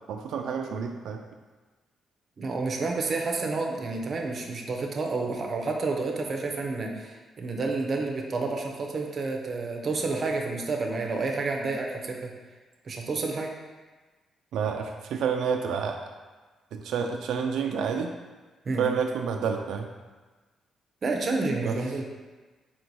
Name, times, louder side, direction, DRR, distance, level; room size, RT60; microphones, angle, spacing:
voice 1, 0.1-1.2 14.5-16.1 16.7-18.1 18.8-19.9 21.6-21.8, right 6 dB, 85° right, 3 dB, 0.3 m, -29 dB
voice 2, 2.4-12.3 12.8-13.5 18.7-18.8 21.0-22.0, right 3 dB, 35° right, 1 dB, 0.5 m, -29 dB
4.2 x 2.7 x 4.6 m, 1.3 s
cardioid pair, 165°, 0 cm